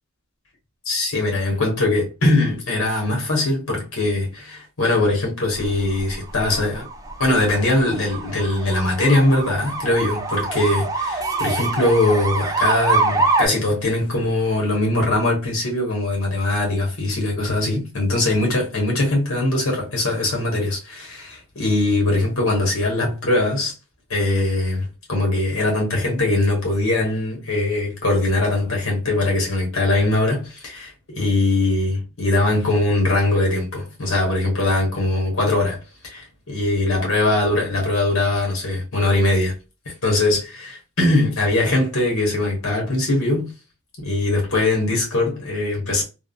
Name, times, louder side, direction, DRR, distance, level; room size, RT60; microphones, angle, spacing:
voice 1, 0.8-6.9 7.2-23.7 24.1-39.5 39.8-43.5 44.0-46.0, left 2 dB, 85° left, 1.4 m, -21 dB
sound 1, 5.6-13.5, right 3 dB, 15° right, 0.4 m, -25 dB
3.5 x 2.1 x 2.4 m
head